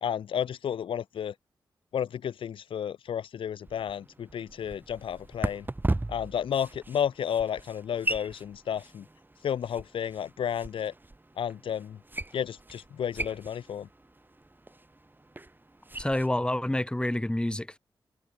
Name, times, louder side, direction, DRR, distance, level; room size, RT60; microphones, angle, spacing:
voice 1, 0.0-1.3 1.9-5.7 6.1-9.0 9.4-10.9 11.4-12.0 12.3-13.9, left 8 dB, 80° left, 1.4 m, -32 dB
sound 1, 3.6-16.3, right 2 dB, 20° right, 3.5 m, -38 dB
voice 2, 16.0-17.8, left 1 dB, 10° left, 1.5 m, -28 dB
supercardioid pair, 45°, 9 cm